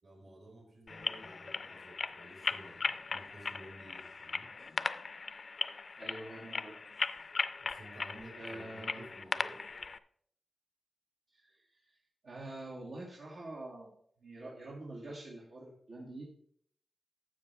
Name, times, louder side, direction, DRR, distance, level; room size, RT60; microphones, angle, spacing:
voice 1, 0.0-4.5 7.6-9.7, right 1 dB, 60° right, 1 dB, 3.8 m, -53 dB
sound 1, 0.9-10.0, left 4 dB, 50° left, 0.4 m, -38 dB
voice 2, 6.0-6.9 8.4-9.1 11.3-12.0 12.2-16.4, right 2 dB, 80° right, -6 dB, 2.3 m, -46 dB
12.0 x 7.5 x 3.4 m, 0.65 s
wide cardioid pair, 110°, 0 cm